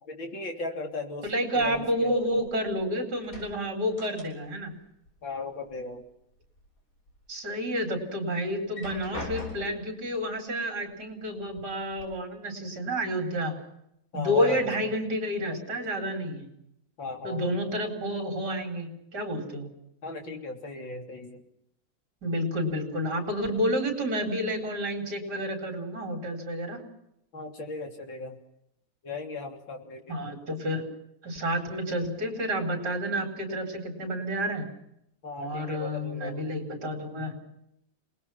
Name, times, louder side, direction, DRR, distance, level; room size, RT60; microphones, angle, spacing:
voice 1, 0.0-2.2 5.2-6.0 14.1-14.7 17.0-17.5 20.0-21.4 27.3-28.4 29.0-30.2 35.2-36.4, left 3 dB, 60° left, 2 dB, 4.1 m, -37 dB
voice 2, 1.2-4.7 7.3-13.5 14.1-16.5 17.2-19.7 22.2-26.8 30.1-30.8 31.2-34.7 35.4-37.3, equal, 50° right, 4 dB, 4.8 m, -30 dB
sound 1, 1.6-2.8 3.1-4.7 5.0-6.0 6.4-7.2 7.7-7.8 8.5-9.9 10.9-11.0 11.4-12.0, left 3 dB, 40° left, 7.5 m, -43 dB
30.0 x 20.0 x 5.8 m, 0.78 s
omnidirectional pair, 2.3 m